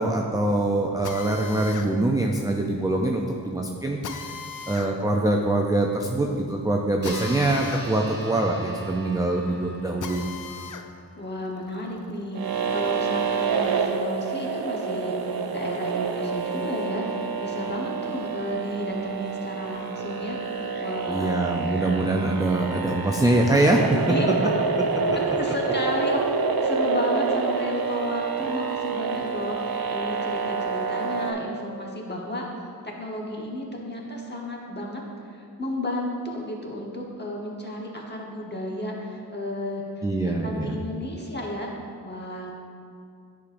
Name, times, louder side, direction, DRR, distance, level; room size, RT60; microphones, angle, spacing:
voice 1, 0.0-4.3 4.7-10.3 21.1-24.2 24.9-25.0 40.0-40.8, right 2 dB, 10° right, 0 dB, 0.4 m, -24 dB
Drill, 1.0-10.9 11.3-12.9, left 6 dB, 50° left, 0.5 m, -40 dB
sound 1, 7.0-11.9, right 2 dB, 25° right, 1.1 m, -42 dB
voice 2, 11.1-20.4 20.8-21.3 24.1-24.5 25.1-26.2 26.6-32.5 33.0-35.0 35.3-41.7 42.0-42.5, left 1 dB, 25° left, -2 dB, 1.1 m, -32 dB
sound 2, 12.3-31.3, right 5 dB, 60° right, 0.5 m, -28 dB
9.9 x 5.0 x 2.5 m, 2.4 s
wide cardioid pair, 80°, 41 cm